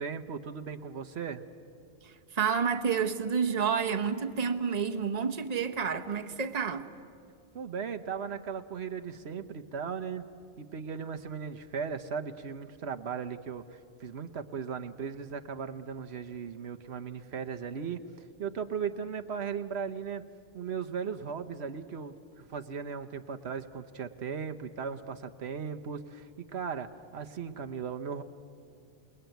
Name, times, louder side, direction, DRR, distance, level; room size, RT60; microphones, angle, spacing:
voice 1, 0.0-1.4 7.5-10.2 10.6-18.0 18.4-20.2 20.5-28.2, right 6 dB, 85° right, 1.3 m, -37 dB
voice 2, 2.0-6.9, right 6 dB, 40° right, 1.1 m, -29 dB
28.0 x 20.5 x 9.2 m
omnidirectional pair, 1.1 m